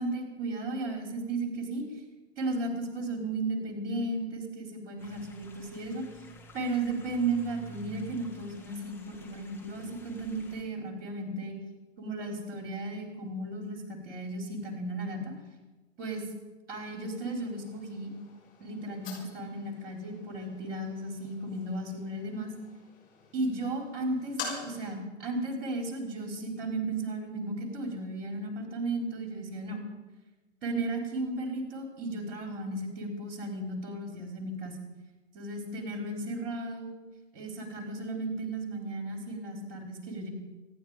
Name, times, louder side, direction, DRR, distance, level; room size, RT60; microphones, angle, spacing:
voice 1, 0.0-1.8 2.4-6.0 6.5-11.5 12.0-15.3 16.0-16.2 16.7-18.1 18.6-22.5 23.3-29.8 30.6-34.8 35.3-36.9 37.3-40.3, right 2 dB, 50° right, 2 dB, 4.6 m, -35 dB
sound 1, 5.0-10.6, right 2 dB, 5° left, 2.4 m, -51 dB
sound 2, 16.7-24.9, left 5 dB, 20° left, 6.2 m, -47 dB
26.0 x 10.5 x 5.1 m, 1.2 s
figure-of-eight pair, 110°, 35 cm